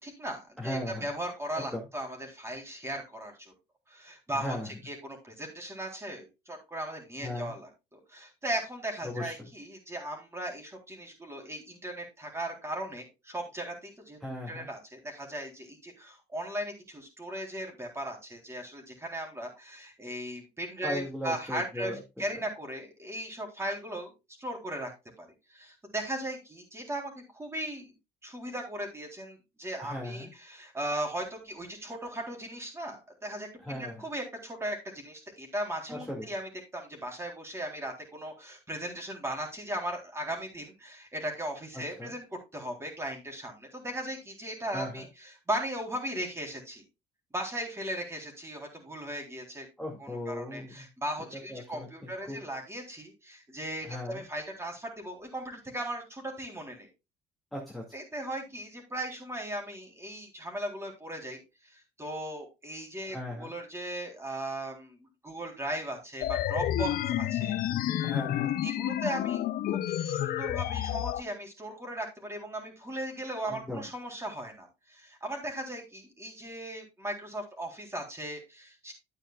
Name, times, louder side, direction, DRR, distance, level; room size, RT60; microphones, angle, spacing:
voice 1, 0.0-3.5 3.9-14.2 14.5-21.9 22.2-24.1 24.4-24.9 25.2-27.9 28.2-42.3 42.5-46.8 47.3-49.7 50.0-56.9 57.9-67.6 68.0-68.1 68.6-78.9, right 1 dB, 15° right, 2 dB, 3.7 m, -37 dB
voice 2, 0.6-1.1 1.6-1.9 4.3-4.7 7.2-7.5 9.0-9.5 14.2-14.7 20.8-22.0 29.8-30.3 33.6-34.1 35.9-36.3 41.7-42.1 44.7-45.1 49.8-50.9 51.3-52.4 53.8-54.2 57.5-57.8 63.1-63.5 68.0-68.6 73.5-73.8, left 1 dB, ahead, -3 dB, 2.2 m, -37 dB
sound 1, 66.2-71.2, left 12 dB, 60° left, 0.6 m, -30 dB
10.5 x 8.8 x 2.4 m, 0.25 s
cardioid pair, 110°, 17 cm